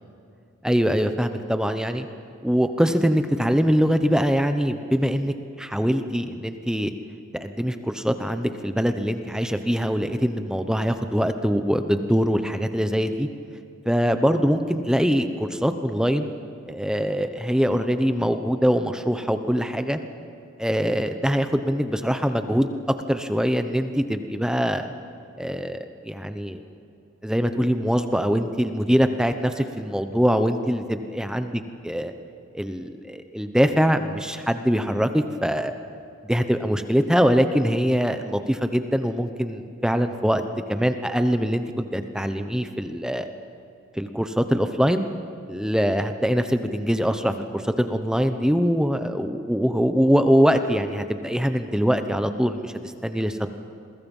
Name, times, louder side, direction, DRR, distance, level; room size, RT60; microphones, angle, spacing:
voice 1, 0.6-2.1 2.4-6.9 7.4-13.3 13.8-16.3 16.7-20.0 20.6-22.7 23.1-24.9 25.4-26.6 27.2-32.1 32.5-35.7 36.2-40.4 40.7-43.3 43.9-45.0 45.5-53.5, equal, 5° right, 8 dB, 0.8 m, -23 dB
28.0 x 22.5 x 5.5 m, 2.5 s
head